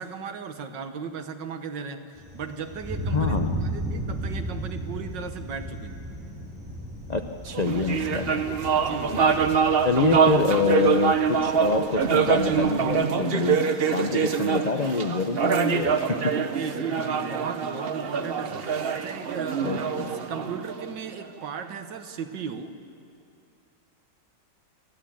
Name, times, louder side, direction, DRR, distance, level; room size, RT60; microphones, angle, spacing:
voice 1, 0.0-3.4 3.6-6.0 8.8-9.6 16.5-19.9 20.3-22.8, right 6 dB, 75° right, 8 dB, 1.8 m, -36 dB
Thunder, 2.2-12.8, right 1 dB, 5° right, 3.4 m, -35 dB
voice 2, 3.1-3.6 7.1-8.4 9.8-13.6 13.9-16.0 19.6-20.1, left 4 dB, 60° left, 6 dB, 0.4 m, -26 dB
sound 1, 7.5-21.2, right 6 dB, 45° right, 0.8 m, -25 dB
29.5 x 11.5 x 8.7 m, 2.4 s
omnidirectional pair, 1.9 m